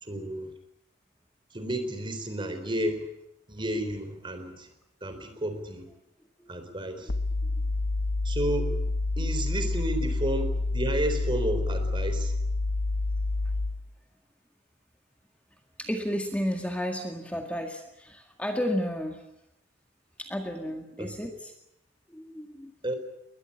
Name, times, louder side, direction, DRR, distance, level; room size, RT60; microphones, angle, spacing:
voice 1, 0.0-0.5 1.5-3.1 3.5-4.7 5.0-5.9 6.5-7.1 8.2-8.8 9.2-12.3 21.0-21.1 22.8-22.9, right 1 dB, 25° right, 8 dB, 3.9 m, -31 dB
sound 1, 7.1-13.9, left 2 dB, 75° left, 0.9 m, -28 dB
voice 2, 15.8-19.2 20.2-21.5 22.1-22.7, equal, 5° left, 3 dB, 1.9 m, -32 dB
22.0 x 21.0 x 9.8 m, 0.83 s
head